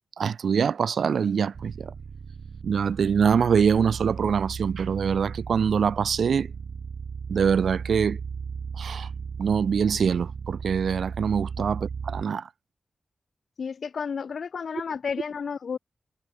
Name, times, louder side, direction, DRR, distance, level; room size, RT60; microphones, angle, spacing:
voice 1, 0.2-1.9 2.6-6.5 7.3-8.2 8.7-9.1 9.4-12.5, right 6 dB, 85° right, 1.3 m, -24 dB
sound 1, 1.5-12.2, right 6 dB, 70° right, 0.9 m, -36 dB
voice 2, 13.6-15.8, left 6 dB, 70° left, 0.6 m, -32 dB
wide cardioid pair, 115°, 0 cm